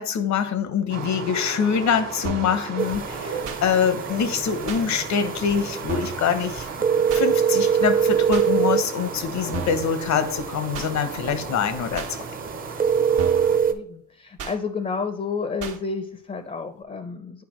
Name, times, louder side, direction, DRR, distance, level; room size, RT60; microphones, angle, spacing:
voice 1, 0.0-6.7 7.1-12.1, left 7 dB, 65° left, 11 dB, 0.9 m, -24 dB
sound 1, 0.9-13.6, right 5 dB, 60° right, 1.4 m, -36 dB
sound 2, 2.2-2.6 3.4-3.6 4.7-4.8 5.9-6.2 7.1-7.3 8.3-8.5 9.5-9.9 10.7-10.9 12.0-12.1 13.2-13.5 14.4-14.6 15.6-15.8, right 5 dB, 80° right, 1.1 m, -33 dB
sound 3, 2.8-13.7, right 7 dB, 30° right, 0.6 m, -25 dB
voice 2, 4.0-4.4 13.7-17.4, left 4 dB, 25° left, 9 dB, 0.5 m, -31 dB
9.4 x 4.5 x 3.1 m, 0.63 s
cardioid pair, 90°, 30 cm